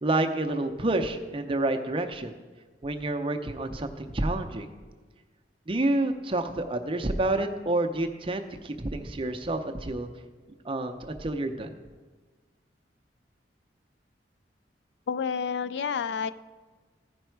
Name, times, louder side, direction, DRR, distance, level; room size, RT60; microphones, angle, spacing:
voice 1, 0.0-2.3 2.8-4.7 5.7-10.1 10.6-11.7, right 2 dB, 30° right, 5 dB, 0.6 m, -28 dB
voice 2, 15.1-16.3, left 6 dB, 70° left, 14 dB, 0.3 m, -29 dB
14.5 x 5.3 x 4.6 m, 1.4 s
head